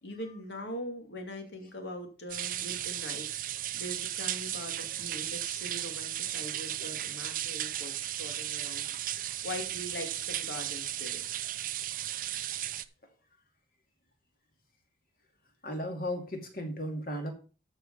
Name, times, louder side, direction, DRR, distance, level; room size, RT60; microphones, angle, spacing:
voice 1, 0.0-3.4 3.7-8.9 9.4-11.2, left 1 dB, 75° left, 4 dB, 2.4 m, -42 dB
sound 1, 2.3-12.8, right 12 dB, 45° right, 0.5 m, -35 dB
voice 2, 15.6-17.3, equal, 50° left, 3 dB, 2.4 m, -35 dB
13.0 x 4.7 x 5.5 m, 0.36 s
head